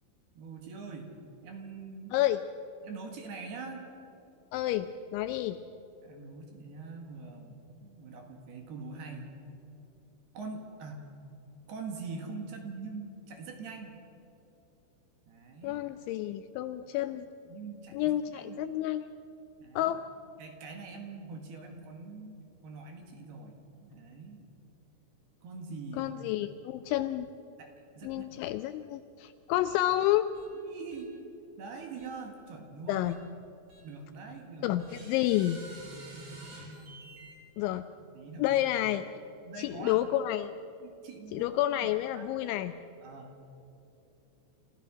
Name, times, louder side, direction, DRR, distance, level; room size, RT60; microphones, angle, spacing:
voice 1, 0.3-1.1 1.4-2.1 2.8-3.8 6.0-9.3 10.3-11.1 11.7-13.9 15.3-15.8 17.5-18.6 19.6-19.9 20.4-22.4 22.6-24.4 25.4-26.1 27.6-28.5 30.5-31.1 31.6-33.1 33.8-34.8 35.9-37.0 38.1-38.6 39.4-40.0 40.8-41.5 41.8-42.3 43.0-43.3, right 4 dB, 60° right, 3 dB, 3.4 m, -44 dB
voice 2, 2.1-2.4 4.5-5.6 15.6-17.3 17.9-19.1 19.8-20.0 25.9-27.3 28.0-30.3 32.9-33.2 34.6-35.6 37.6-37.9 38.4-39.0 39.6-40.5 41.3-42.7, left 14 dB, 85° left, 10 dB, 2.7 m, -29 dB
sound 1, 30.3-30.5 30.9-31.0 32.0-32.1 33.0-33.1 33.7-33.8 34.8-37.3, right 1 dB, 30° right, 4.9 m, -49 dB
29.5 x 14.5 x 6.2 m, 2.9 s
omnidirectional pair, 5.8 m